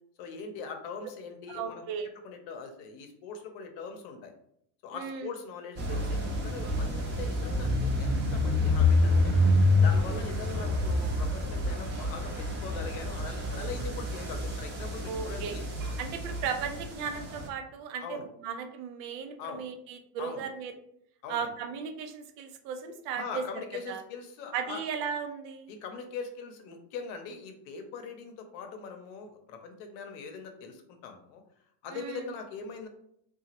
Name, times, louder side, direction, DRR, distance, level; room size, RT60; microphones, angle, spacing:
voice 1, 0.2-1.8 2.2-4.3 4.8-9.3 9.8-15.6 18.0-18.3 19.4-19.6 20.2-20.5 21.2-21.5 23.1-24.8 25.7-31.4 31.8-32.9, left 5 dB, 70° left, 5 dB, 0.7 m, -41 dB
voice 2, 1.5-2.1 4.9-5.3 15.1-15.6 16.0-20.7 21.3-23.4 23.9-24.0 24.5-25.7 31.9-32.3, right 6 dB, 85° right, 7 dB, 0.6 m, -36 dB
sound 1, 5.8-17.5, left 1 dB, 25° right, 0.4 m, -28 dB
2.9 x 2.3 x 2.9 m, 0.72 s
cardioid pair, 135°, 50 cm